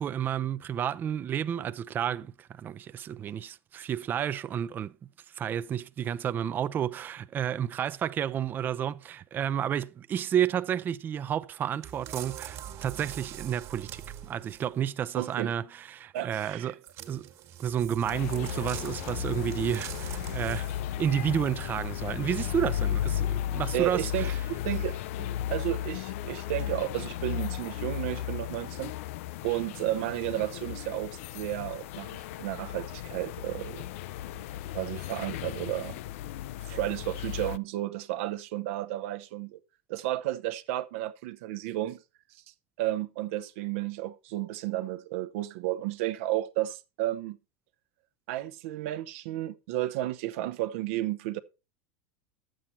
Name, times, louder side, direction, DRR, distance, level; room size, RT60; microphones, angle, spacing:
voice 1, 0.0-4.9 5.3-16.8 17.1-17.3 17.6-20.7 21.0-24.3, right 9 dB, 25° right, 0.4 m, -31 dB
sound 1, 11.8-14.8 16.8-21.0 21.6-21.7, right 11 dB, 45° right, 1.6 m, -43 dB
voice 2, 15.1-15.5 16.1-16.7 23.7-28.9 29.4-33.9 34.6-36.0 36.7-39.6 39.9-42.0 42.8-47.4 48.3-51.4, right 15 dB, 70° right, 0.7 m, -32 dB
sound 2, 18.0-37.6, left 11 dB, 70° left, 0.4 m, -35 dB
9.9 x 7.6 x 4.3 m
supercardioid pair, 125°, 7 cm